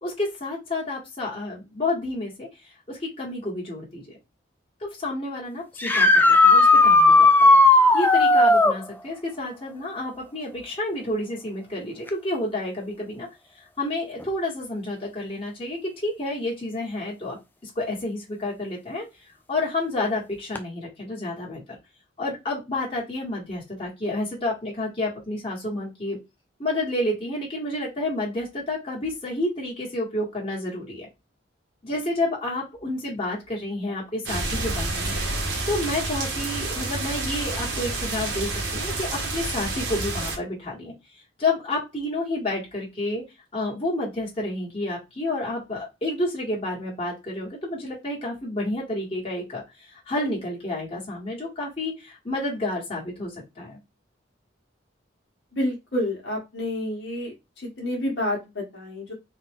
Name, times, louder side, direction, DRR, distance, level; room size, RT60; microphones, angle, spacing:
voice 1, 0.0-4.2 4.8-7.5 7.9-13.3 13.6-19.1 19.5-21.6 22.2-26.2 26.6-31.1 31.8-35.2 35.7-43.2 43.5-53.8, left 2 dB, 30° left, -4 dB, 1.7 m, -30 dB
sound 1, 5.8-8.8 12.1-12.2 14.2-14.3 20.5-20.6, left 2 dB, 10° left, 0.4 m, -15 dB
sound 2, 34.3-40.4, right 2 dB, 60° right, 1.4 m, -29 dB
voice 2, 55.5-57.3 57.8-59.1, left 1 dB, 60° left, -2 dB, 1.5 m, -28 dB
4.0 x 2.6 x 3.6 m, 0.24 s
head